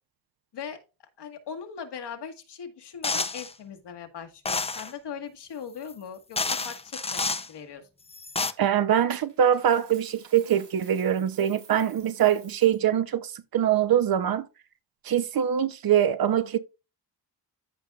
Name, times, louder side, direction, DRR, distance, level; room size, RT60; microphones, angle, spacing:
voice 1, 1.2-6.4 6.6-7.9, left 7 dB, 70° left, 1.7 m, -40 dB
sound 1, 3.0-3.5 4.4-4.9 5.9-6.0 6.4-7.5 8.1-8.5, left 3 dB, 15° left, 0.5 m, -29 dB
voice 2, 8.6-14.5 15.0-16.6, right 10 dB, 55° right, 0.7 m, -23 dB
Coin (dropping), 9.3-12.8, right 7 dB, 85° right, 4.0 m, -53 dB
14.0 x 5.2 x 2.4 m
cardioid pair, 120°, 42 cm